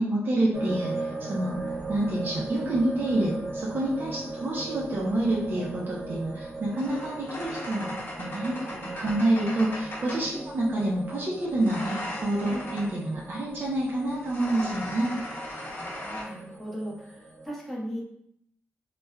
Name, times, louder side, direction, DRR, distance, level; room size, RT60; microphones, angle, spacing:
voice 1, 0.0-8.6 8.9-15.1, right 1 dB, 50° right, -5 dB, 0.7 m, -28 dB
sound 1, 0.5-17.5, right 2 dB, 80° right, 0.9 m, -39 dB
sound 2, 1.5-3.6 4.8-10.4 11.5-13.0 14.1-16.2, left 1 dB, 50° left, 0.8 m, -39 dB
voice 2, 8.6-9.1 10.3-10.4 12.5-12.6 15.6-18.0, equal, 5° left, -4 dB, 0.8 m, -38 dB
3.2 x 2.3 x 2.2 m, 0.71 s
wide cardioid pair, 100°, 5 cm